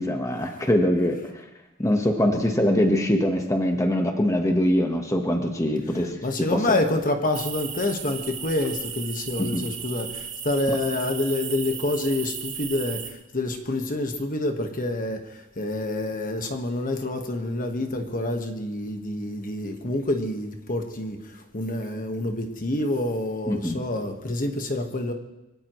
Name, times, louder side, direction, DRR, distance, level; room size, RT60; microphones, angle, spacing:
voice 1, 0.0-1.5 1.8-6.6 9.4-9.6 23.5-23.8, left 1 dB, 15° left, 1.3 m, -23 dB
voice 2, 6.2-25.1, left 1 dB, 40° left, 1.5 m, -27 dB
sound 1, 7.3-13.1, right 8 dB, 40° right, 2.9 m, -35 dB
24.0 x 17.0 x 3.1 m
head